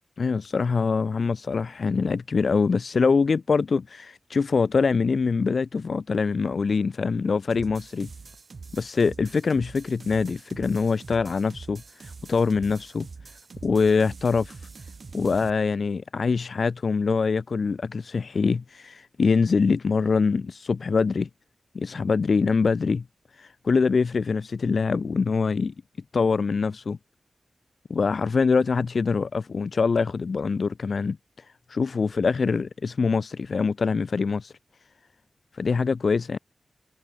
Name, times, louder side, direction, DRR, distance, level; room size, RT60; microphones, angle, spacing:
voice 1, 0.2-8.1 8.7-13.1 13.6-14.6 15.1-21.3 21.7-23.0 23.4-25.7 26.1-27.0 27.9-31.2 31.7-34.5 35.5-36.4, left 4 dB, 55° left, 0.5 m, -24 dB
sound 1, 7.5-15.5, right 4 dB, 50° right, 2.4 m, -44 dB
wide cardioid pair, 145°, 0 cm